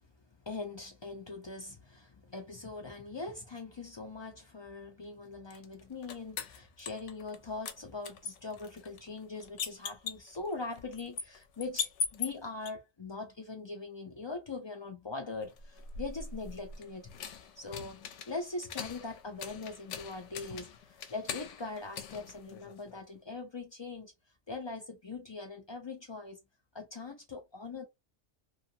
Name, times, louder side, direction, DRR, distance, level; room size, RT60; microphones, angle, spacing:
voice 1, 0.5-17.2 17.6-24.1 24.5-26.4 26.7-27.9, left 3 dB, 50° left, 0.3 m, -41 dB
sound 1, 5.5-7.4 7.7-12.7 15.5-23.0, left 6 dB, 85° left, 0.9 m, -41 dB
2.6 x 2.3 x 2.6 m
omnidirectional pair, 1.2 m